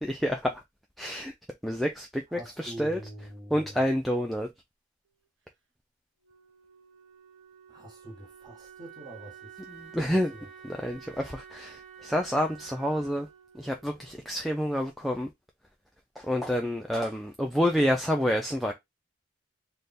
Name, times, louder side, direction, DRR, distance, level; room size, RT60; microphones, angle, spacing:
voice 1, 0.0-0.6 1.0-1.3 1.6-3.0 3.5-4.5 9.7-10.3 10.6-13.3 13.5-15.3 16.2-18.7, equal, ahead, 0.3 m, -28 dB
voice 2, 2.3-3.9 7.7-9.6 10.3-10.5, right 1 dB, 20° right, 1.2 m, -44 dB
Wind instrument woodwind instrument, 6.2-14.9, right 7 dB, 65° right, 0.7 m, -51 dB
3.3 x 2.2 x 3.9 m
head